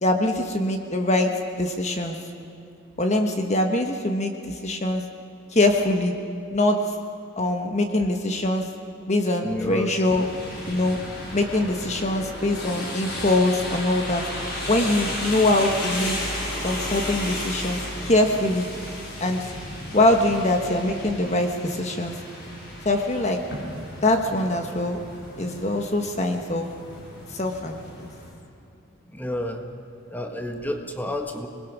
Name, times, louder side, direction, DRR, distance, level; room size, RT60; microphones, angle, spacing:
voice 1, 0.0-2.2 3.0-5.0 5.5-6.1 6.5-6.8 7.4-8.7 9.1-10.3 10.7-11.0 11.3-14.2 14.7-16.1 16.6-18.7 19.2-19.5 19.9-22.2 22.8-23.4 24.0-25.0 25.4-26.7 27.3-28.1, left 1 dB, 35° left, 4 dB, 1.3 m, -23 dB
voice 2, 9.4-10.0 29.1-29.6 30.1-31.5, left 1 dB, 10° left, 4 dB, 1.5 m, -30 dB
sound 1, 10.1-28.3, left 1 dB, 55° left, 5.8 m, -34 dB
27.5 x 20.5 x 6.2 m, 2.6 s
head